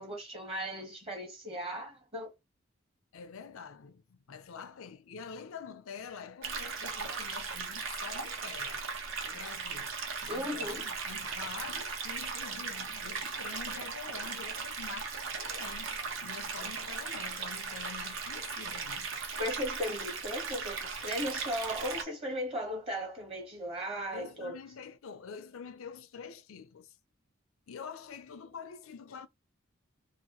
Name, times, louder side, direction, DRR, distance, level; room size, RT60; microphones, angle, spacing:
voice 1, 0.0-2.3 10.3-10.9 19.4-24.6, equal, 30° right, 1.0 m, -36 dB
voice 2, 3.1-8.8 9.2-10.0 10.2-19.1 24.1-27.0 27.7-29.3, left 6 dB, 80° left, 0.5 m, -46 dB
sound 1, 6.4-22.0, right 5 dB, 70° right, 0.8 m, -38 dB
2.9 x 2.6 x 2.8 m
head